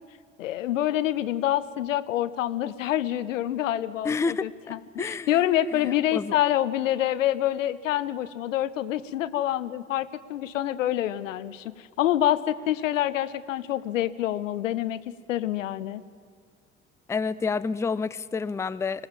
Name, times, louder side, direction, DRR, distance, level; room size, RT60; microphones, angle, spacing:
voice 1, 0.4-16.0, left 12 dB, 80° left, 16 dB, 0.7 m, -27 dB
voice 2, 4.0-5.4 5.7-6.3 17.1-19.1, left 4 dB, 10° left, 16 dB, 0.4 m, -29 dB
20.5 x 17.0 x 7.4 m, 2.1 s
figure-of-eight pair, 55°, 38 cm